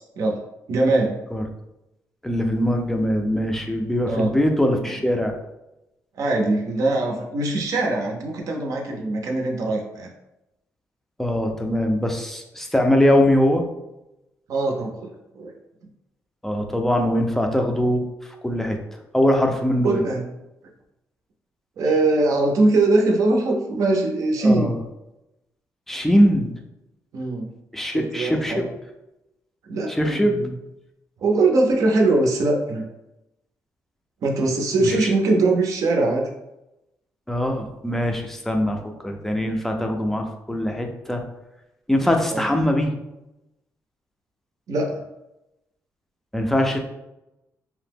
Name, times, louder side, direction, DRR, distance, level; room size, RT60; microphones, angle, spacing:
voice 1, 0.7-1.2 4.1-4.3 4.8-5.0 6.1-10.1 14.5-15.5 19.8-20.3 21.8-24.7 27.1-27.5 27.9-28.7 29.7-30.6 31.2-32.9 34.2-36.3 42.3-42.5 44.7-45.0, right 2 dB, 65° right, 1 dB, 0.5 m, -22 dB
voice 2, 2.2-5.3 11.2-13.6 16.4-18.0 18.4-18.8 19.1-20.0 24.4-24.8 25.9-26.5 27.7-28.6 29.9-30.4 37.3-38.8 39.0-41.2 41.9-42.9 46.3-46.8, equal, 5° left, 3 dB, 0.4 m, -21 dB
2.8 x 2.0 x 3.4 m, 0.91 s
cardioid pair, 115°, 6 cm